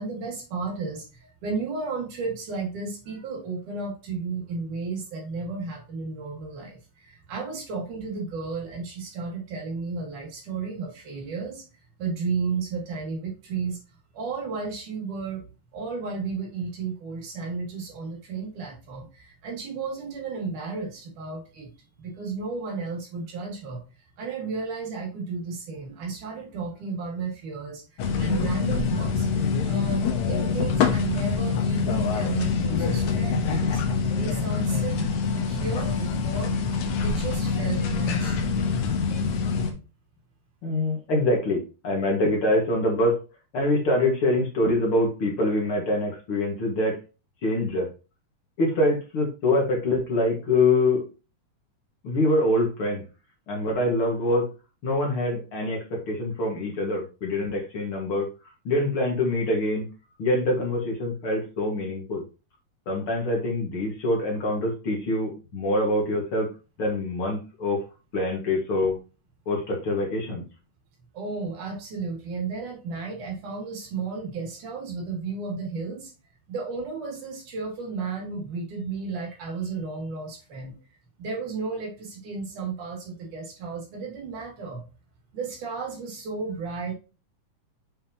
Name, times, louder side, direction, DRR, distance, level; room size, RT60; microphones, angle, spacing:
voice 1, 0.0-11.6 12.0-13.8 14.1-15.4 15.7-21.7 22.0-23.8 24.2-29.3 29.7-33.8 34.1-36.5 37.0-38.6 71.1-76.1 76.5-80.7 81.2-84.8 85.3-86.9, right 4 dB, 75° right, -1 dB, 4.0 m, -33 dB
sound 1, 28.0-39.7, left 5 dB, 75° left, 2.4 m, -25 dB
voice 2, 40.6-43.2 43.5-47.0 47.4-47.9 48.6-51.0 52.0-53.0 53.5-54.5 54.8-58.3 58.6-59.9 60.2-62.2 62.9-66.5 66.8-67.8 68.1-69.0 69.5-70.4, left 1 dB, 45° left, -1 dB, 2.4 m, -25 dB
7.6 x 6.6 x 2.9 m, 0.32 s
omnidirectional pair, 3.6 m